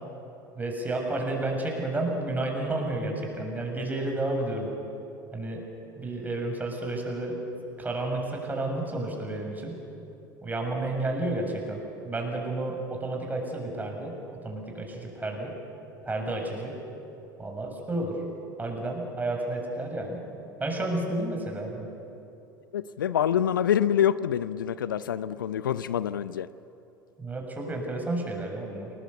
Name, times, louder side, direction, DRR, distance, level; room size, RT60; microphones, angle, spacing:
voice 1, 0.5-4.7 5.3-5.6 6.0-7.4 7.8-9.7 10.4-14.2 14.4-15.5 16.0-16.7 17.4-18.2 18.6-20.2 20.6-21.9 27.2-28.9, right 2 dB, 15° right, 1 dB, 6.8 m, -31 dB
voice 2, 22.7-26.5, left 9 dB, 75° left, 16 dB, 0.6 m, -26 dB
28.5 x 19.5 x 8.2 m, 2.8 s
figure-of-eight pair, 75°, 11 cm